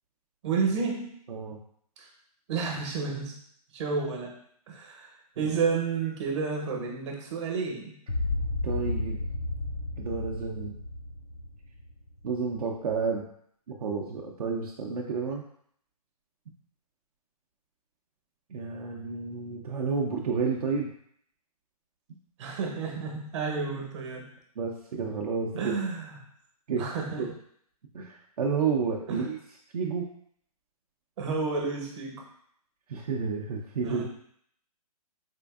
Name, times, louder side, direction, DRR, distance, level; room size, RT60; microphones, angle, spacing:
voice 1, 0.4-1.1 2.0-2.1 2.5-3.4 3.7-4.4 4.7-8.0 22.4-24.3 25.6-26.1 26.8-27.3 29.1-29.3 31.2-32.2 33.8-34.0, right 5 dB, 45° right, 1 dB, 0.8 m, -31 dB
voice 2, 1.3-1.6 5.4-5.5 8.6-9.2 10.0-10.8 12.2-13.2 13.7-15.4 18.5-20.9 24.6-25.7 26.7-26.9 27.2-27.3 27.9-29.4 29.7-30.1 32.9-34.0, right 5 dB, 70° right, -1 dB, 0.5 m, -30 dB
sound 1, 8.1-12.4, left 2 dB, 80° left, 0.6 m, -32 dB
4.4 x 2.6 x 2.3 m, 0.67 s
hypercardioid pair, 140°, 20 cm